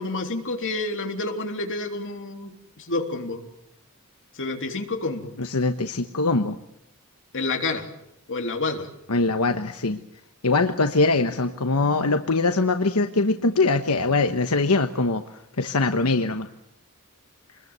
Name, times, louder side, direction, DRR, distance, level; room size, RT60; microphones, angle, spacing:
voice 1, 0.0-3.4 4.3-5.3 7.3-7.9 8.3-8.9, left 3 dB, 60° left, 4 dB, 3.4 m, -29 dB
voice 2, 5.4-6.6 9.1-10.0 10.4-15.2 15.6-16.5, left 3 dB, 90° left, 7 dB, 1.2 m, -22 dB
26.5 x 21.0 x 8.2 m, 0.80 s
head